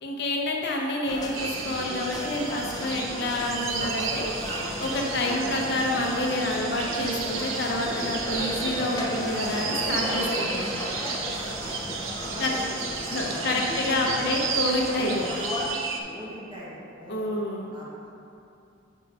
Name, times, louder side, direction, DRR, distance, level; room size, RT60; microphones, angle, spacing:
voice 1, 0.0-4.3 4.8-10.7 12.4-12.6 13.1-15.3 17.1-17.7, left 1 dB, 60° left, 0 dB, 0.7 m, -28 dB
sound 1, 1.1-15.7, left 1 dB, 20° left, 0.6 m, -34 dB
sound 2, 1.3-16.0, right 5 dB, 85° right, 0.6 m, -33 dB
voice 2, 12.1-12.7 12.9-13.5 14.0-14.2 16.0-17.3 17.6-17.9, equal, 25° right, -6 dB, 1.4 m, -42 dB
5.4 x 4.5 x 5.2 m, 2.6 s
head